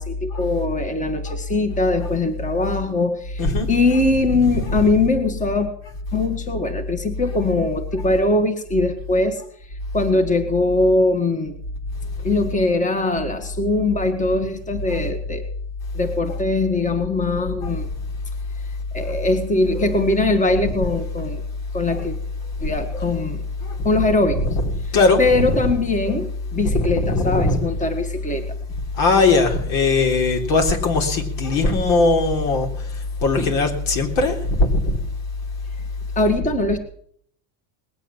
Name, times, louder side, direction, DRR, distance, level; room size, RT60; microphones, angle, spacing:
voice 1, 0.0-5.7 6.1-9.4 9.9-11.5 12.2-15.4 15.9-17.9 18.9-21.4 21.7-22.2 22.6-23.4 23.8-24.5 25.2-28.4 33.4-33.5 36.2-36.8, left 2 dB, 15° left, 1.8 m, -21 dB
voice 2, 4.4-4.9 8.0-8.1 14.9-15.0 16.3-16.4 17.6-17.7 19.0-19.1 19.7-19.9 20.8-20.9 21.9-22.1 22.9-23.1 23.6-23.8 24.4-25.6 26.1-26.2 26.6-27.6 29.0-32.7 33.2-35.0, left 3 dB, 75° left, 3.8 m, -20 dB
20.0 x 8.2 x 7.3 m
supercardioid pair, 115°, 49 cm